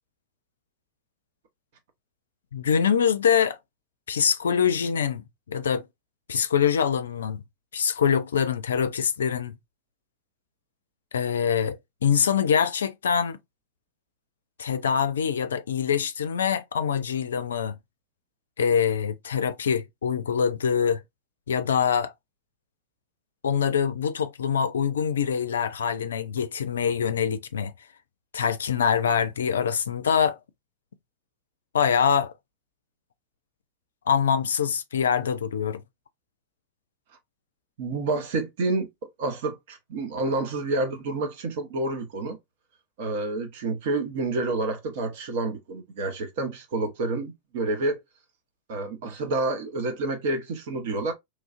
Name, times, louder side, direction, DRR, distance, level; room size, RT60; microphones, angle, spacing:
voice 1, 2.5-3.6 4.1-5.8 6.3-7.4 7.7-9.5 11.1-13.4 14.6-17.8 18.6-21.0 21.5-22.1 23.4-27.7 28.3-30.4 31.7-32.3 34.1-35.8, left 7 dB, 65° left, 0.3 m, -24 dB
voice 2, 37.8-38.9 39.2-42.4 43.0-48.0 48.7-51.1, right 2 dB, 50° right, 0.8 m, -28 dB
3.1 x 2.4 x 2.4 m
figure-of-eight pair, 90°, 0 cm